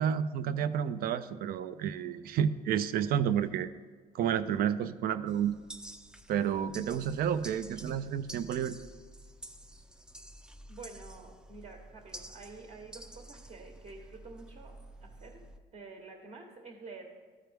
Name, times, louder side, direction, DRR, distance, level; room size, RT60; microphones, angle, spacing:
voice 1, 0.0-3.7 4.1-5.6 6.3-8.7, right 8 dB, 60° right, 13 dB, 0.4 m, -30 dB
sound 1, 5.3-15.6, right 1 dB, 5° right, 0.4 m, -50 dB
voice 2, 10.7-14.7 15.0-15.4 15.7-17.0, right 3 dB, 40° right, 2 dB, 1.2 m, -49 dB
13.5 x 4.6 x 3.4 m, 1.5 s
cardioid pair, 110°, 17 cm